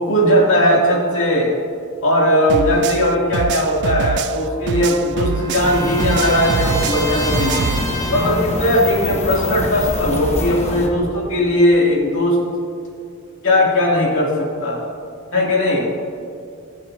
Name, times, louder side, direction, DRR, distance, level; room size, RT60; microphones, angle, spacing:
voice 1, 0.0-1.5 2.0-7.8 8.1-12.4 13.4-14.8 15.3-15.9, left 1 dB, 60° left, -3 dB, 2.7 m, -18 dB
sound 1, 2.5-5.7 6.0-7.8, right 6 dB, 50° right, 0.3 m, -24 dB
Trumpet, 4.3-8.5, equal, 15° left, 2.0 m, -30 dB
sound 2, 5.5-10.9, left 1 dB, 30° left, 1.1 m, -25 dB
21.5 x 7.3 x 2.8 m, 2.4 s
head